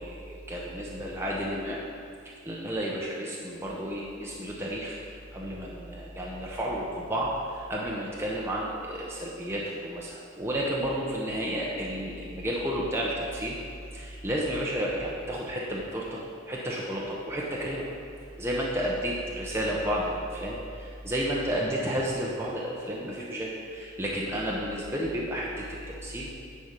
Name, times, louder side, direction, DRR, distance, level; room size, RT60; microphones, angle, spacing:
voice 1, 0.0-1.8 2.2-5.0 5.3-13.6 13.9-17.9 18.4-25.5 25.9-26.3, equal, 10° right, -4 dB, 0.7 m, -32 dB
9.6 x 4.3 x 5.2 m, 2.3 s
head